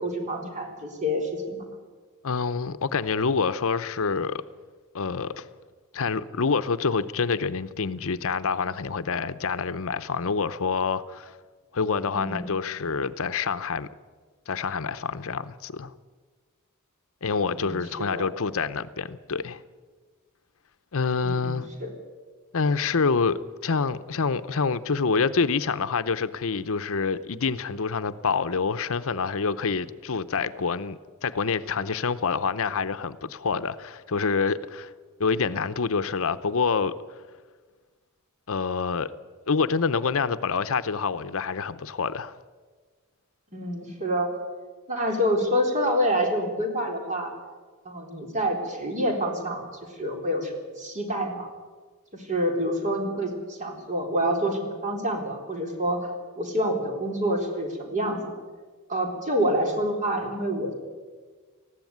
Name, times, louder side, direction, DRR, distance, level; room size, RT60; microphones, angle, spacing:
voice 1, 0.0-1.6 12.1-12.4 17.4-17.8 18.1-18.3 21.2-21.9 43.5-44.3 44.9-47.3 47.9-49.6 50.0-50.5 50.8-51.5 52.2-56.1 56.4-58.2 58.9-60.7, equal, 35° right, 4.0 m, -27 dB
voice 2, 2.2-4.4 4.9-5.5 5.9-11.4 11.7-13.9 14.5-15.9 17.2-19.6 20.9-21.7 22.5-34.9 35.2-37.2 38.5-39.1 39.5-42.3, left 5 dB, 65° left, 0.7 m, -27 dB
19.5 x 15.0 x 9.4 m
head